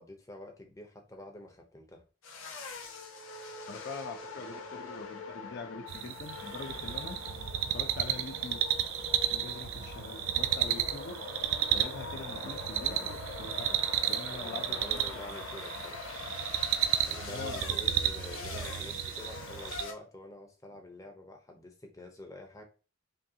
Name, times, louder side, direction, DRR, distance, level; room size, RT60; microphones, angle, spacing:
voice 1, 0.0-2.0 14.3-16.0 17.0-22.6, left 1 dB, 15° left, 0.7 m, -47 dB
sound 1, 2.2-19.9, left 4 dB, 75° left, 0.9 m, -43 dB
voice 2, 3.7-7.2 7.7-8.6 9.2-11.3 11.7-13.8 14.1-15.2 17.2-17.6, left 3 dB, 50° left, 0.5 m, -43 dB
sound 2, 5.9-19.8, right 10 dB, 75° right, 0.4 m, -33 dB
5.2 x 2.3 x 2.8 m
head